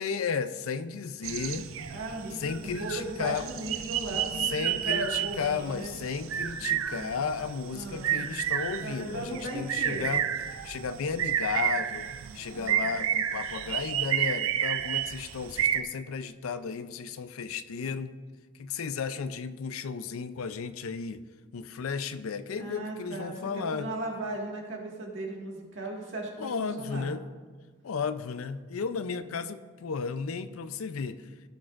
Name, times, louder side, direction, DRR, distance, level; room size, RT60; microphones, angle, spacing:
voice 1, 0.0-1.7 2.4-3.5 4.4-10.2 10.6-12.1 12.3-18.2 18.5-21.2 21.5-23.9 26.4-27.2 27.8-31.3, left 5 dB, 90° left, 12 dB, 0.5 m, -34 dB
sound 1, 1.2-15.8, right 10 dB, 80° right, 0.5 m, -31 dB
voice 2, 1.9-6.0 7.7-8.2 8.8-10.1 12.5-12.9 22.6-26.5 26.8-27.1, right 1 dB, 65° right, -1 dB, 1.7 m, -37 dB
16.5 x 6.3 x 2.5 m, 1.4 s
head